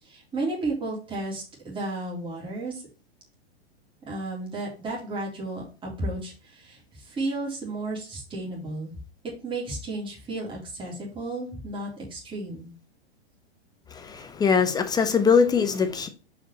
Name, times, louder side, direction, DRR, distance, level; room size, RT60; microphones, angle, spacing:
voice 1, 0.0-2.8 4.1-8.9 9.4-12.7, right 2 dB, 15° right, 3.7 m, -33 dB
voice 2, 13.9-16.1, left 6 dB, 10° left, 0.8 m, -22 dB
5.3 x 5.2 x 5.8 m
hypercardioid pair, 125°, 33 cm